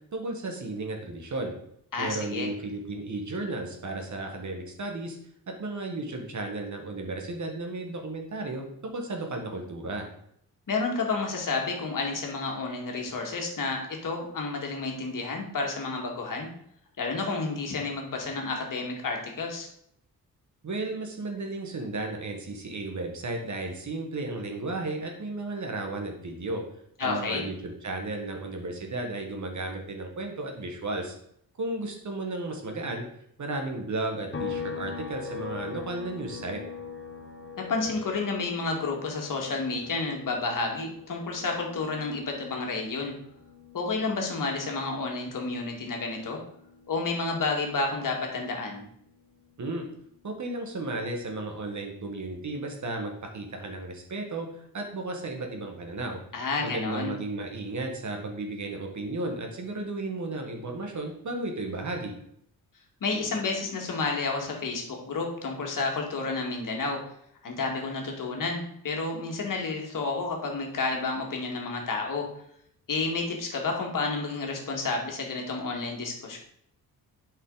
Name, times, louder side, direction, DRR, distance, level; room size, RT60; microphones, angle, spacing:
voice 1, 0.1-1.5 2.0-5.2 5.5-10.1 20.6-26.6 27.0-31.1 31.6-33.1 33.4-36.6 49.6-49.8 50.2-54.5 54.7-56.2 56.6-62.1, right 2 dB, 50° right, 3 dB, 1.8 m, -34 dB
voice 2, 1.9-2.5 10.7-16.5 17.0-19.7 27.0-27.4 37.6-43.1 43.7-46.4 46.9-48.8 56.3-57.1 63.0-67.0 67.4-72.3 72.9-76.4, left 3 dB, 60° left, 1 dB, 2.0 m, -30 dB
sound 1, 34.3-47.9 48.2-50.4, left 6 dB, 35° left, 1.1 m, -43 dB
8.1 x 5.6 x 4.0 m, 0.71 s
cardioid pair, 80°, 36 cm